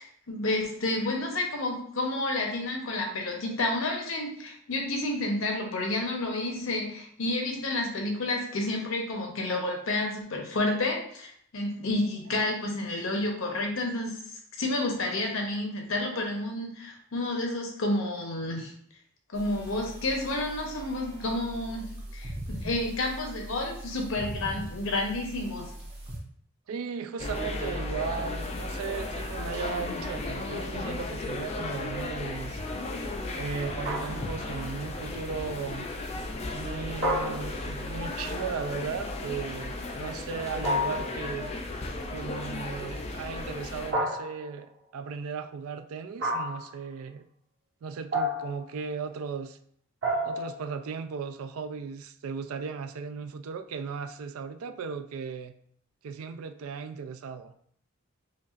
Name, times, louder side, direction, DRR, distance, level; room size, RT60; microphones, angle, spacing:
voice 1, 0.0-14.2 14.6-18.7 19.3-25.7, left 2 dB, 70° left, 1 dB, 0.8 m, -30 dB
sound 1, 19.3-26.2, right 1 dB, 30° right, 1.0 m, -40 dB
voice 2, 26.7-32.6 33.3-35.9 36.5-41.5 42.1-47.2 47.8-49.6 50.2-55.5 56.0-57.5, right 5 dB, 80° right, 9 dB, 0.3 m, -36 dB
sound 2, 27.2-43.9, left 2 dB, 30° left, 0.3 m, -35 dB
sound 3, 33.8-34.5 37.0-37.9 40.6-41.2 43.9-44.6 46.2-46.7 48.1-48.7 50.0-50.7, equal, 55° right, 1.1 m, -30 dB
5.2 x 2.4 x 2.5 m, 0.64 s
head